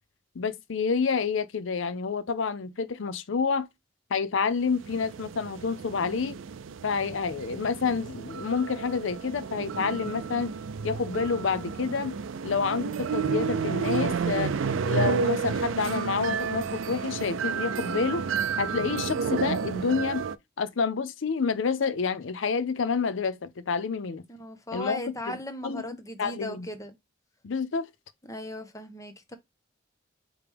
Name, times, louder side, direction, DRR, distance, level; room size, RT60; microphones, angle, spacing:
voice 1, 0.4-3.7 4.1-6.4 6.8-10.5 10.8-12.1 12.4-14.5 14.8-18.2 18.6-20.2 20.6-24.2 24.7-25.0 25.3-25.4 25.6-25.8 26.2-26.7 27.4-27.9, left 5 dB, 70° left, 0.5 m, -28 dB
sound 1, 4.7-20.4, right 6 dB, 75° right, 0.4 m, -31 dB
voice 2, 24.3-27.0 28.2-29.4, left 1 dB, 15° left, 0.8 m, -37 dB
4.9 x 3.2 x 3.4 m
head